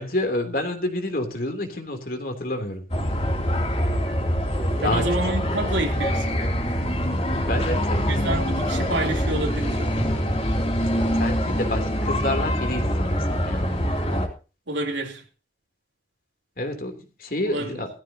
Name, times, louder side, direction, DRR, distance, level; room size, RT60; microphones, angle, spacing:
voice 1, 0.0-2.8 4.8-5.1 7.4-8.0 11.2-13.7 16.6-17.9, left 1 dB, 50° left, 3.3 m, -28 dB
sound 1, 2.9-14.3, equal, 35° left, 3.0 m, -24 dB
voice 2, 4.8-6.5 8.1-10.0 14.7-15.2 17.4-17.8, right 2 dB, 90° right, 3.3 m, -28 dB
18.5 x 14.5 x 2.9 m
head